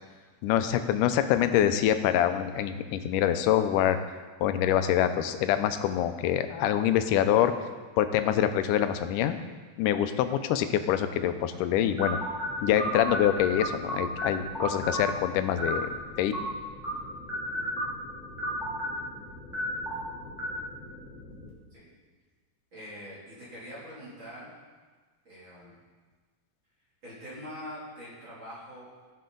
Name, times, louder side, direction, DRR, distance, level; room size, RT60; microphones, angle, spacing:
voice 1, 0.4-4.0 4.4-7.5 8.0-9.4 9.8-12.2 12.6-15.9 16.2-16.3, left 10 dB, 90° left, 9 dB, 2.2 m, -25 dB
sound 1, 12.0-21.5, equal, ahead, 2.1 m, -34 dB
voice 2, 22.7-24.5 25.2-25.8 27.0-28.9, equal, 40° right, -9 dB, 3.2 m, -43 dB
14.5 x 6.6 x 3.8 m, 1.4 s
omnidirectional pair, 3.7 m